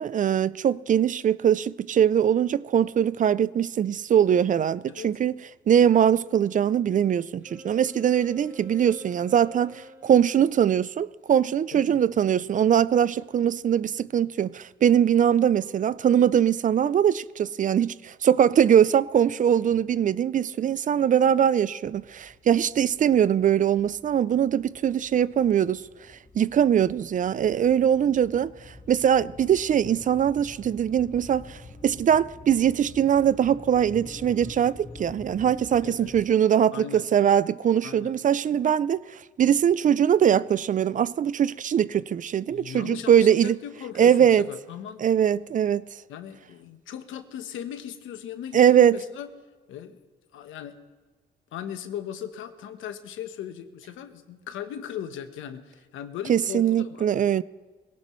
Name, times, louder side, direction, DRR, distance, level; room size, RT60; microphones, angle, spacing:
voice 1, 0.0-5.3 5.7-25.8 26.4-28.5 28.9-31.6 31.8-39.0 39.4-43.6 44.0-44.4 45.0-45.8 48.5-49.0 56.3-57.4, right 9 dB, 40° right, 0.4 m, -22 dB
Wind instrument woodwind instrument, 7.4-10.3, equal, 5° right, 3.7 m, -46 dB
voice 2, 11.7-12.0 35.8-36.1 36.7-37.1 37.8-38.2 42.5-45.0 46.1-49.3 49.7-50.0 50.3-50.8 51.5-57.1, left 9 dB, 80° left, 1.1 m, -38 dB
sound 1, 21.8-36.3, left 2 dB, 40° left, 4.2 m, -47 dB
21.0 x 17.5 x 3.1 m
cardioid pair, 90°, 20 cm